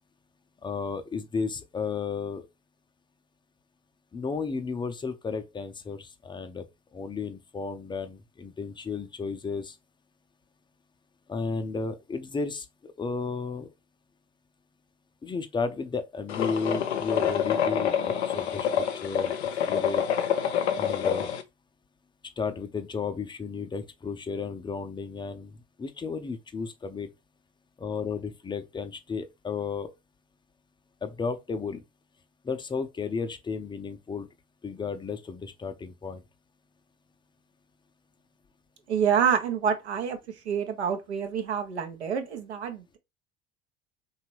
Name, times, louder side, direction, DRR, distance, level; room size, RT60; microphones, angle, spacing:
voice 1, 0.6-2.5 4.1-6.7 6.9-9.8 11.3-12.7 13.0-13.7 15.2-19.3 19.7-20.0 20.8-21.3 22.4-27.1 27.8-29.9 31.0-31.8 32.4-34.3 34.6-36.2, left 5 dB, 15° left, 0.4 m, -33 dB
sound 1, 16.3-21.4, left 8 dB, 90° left, 0.5 m, -27 dB
voice 2, 38.9-40.2 40.4-43.0, right 7 dB, 90° right, 0.7 m, -27 dB
2.9 x 2.3 x 3.0 m
hypercardioid pair, 70°, 32 cm